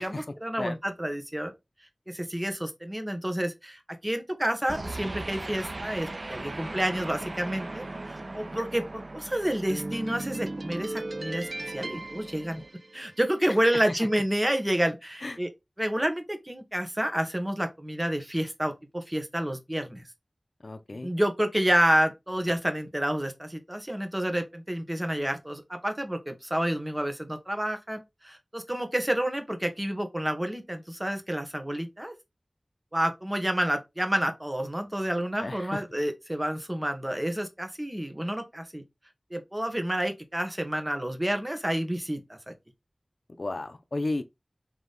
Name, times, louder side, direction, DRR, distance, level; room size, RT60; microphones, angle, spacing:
voice 1, 0.0-1.5 2.1-11.5 11.7-12.6 12.9-15.5 15.8-20.1 21.0-32.1 32.9-38.8 39.3-42.5, right 1 dB, 20° right, 1.1 m, -29 dB
sound 1, 4.7-13.2, right 2 dB, 60° right, 0.4 m, -37 dB
voice 2, 20.6-21.1 35.4-35.8 43.4-44.2, left 2 dB, 70° left, 0.5 m, -33 dB
4.0 x 3.0 x 3.4 m
wide cardioid pair, 50°, 0 cm